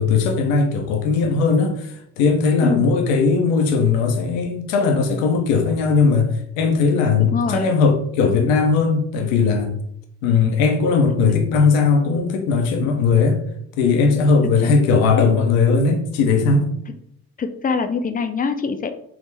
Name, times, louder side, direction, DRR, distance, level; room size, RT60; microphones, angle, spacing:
voice 1, 0.0-9.7 10.2-13.4 13.8-16.7, left 4 dB, 90° left, 4 dB, 0.6 m, -18 dB
voice 2, 2.6-2.9 7.3-7.6 8.2-8.5 14.6-14.7 16.9-17.0 17.4-18.9, left 5 dB, 25° left, 8 dB, 0.3 m, -24 dB
3.4 x 2.0 x 3.2 m, 0.72 s
hypercardioid pair, 55°, 39 cm